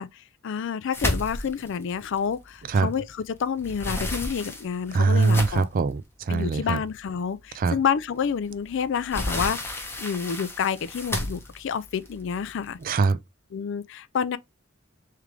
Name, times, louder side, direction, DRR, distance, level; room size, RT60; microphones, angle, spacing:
voice 1, 0.0-5.7 6.3-12.8 13.5-14.4, left 7 dB, 65° left, 0.4 m, -29 dB
sound 1, 0.9-3.1 3.4-5.8 6.5-6.6 7.0-7.1 8.5-12.8, left 1 dB, 10° left, 0.8 m, -32 dB
voice 2, 4.9-6.8 7.6-7.8 12.8-13.2, right 4 dB, 45° right, 0.4 m, -22 dB
3.6 x 3.3 x 3.2 m
head